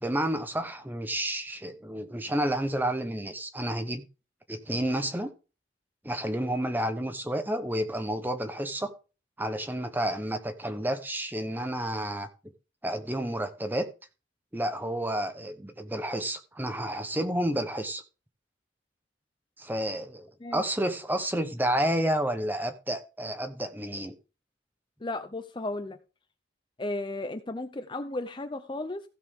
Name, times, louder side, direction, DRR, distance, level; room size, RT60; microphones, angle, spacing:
voice 1, 0.0-4.0 4.5-5.3 6.0-8.9 9.4-12.3 12.8-13.9 14.5-18.0 19.6-24.1, right 1 dB, 10° right, 1.0 m, -30 dB
voice 2, 25.0-26.0 26.8-29.0, left 2 dB, 25° left, 0.6 m, -34 dB
15.5 x 6.7 x 3.7 m
head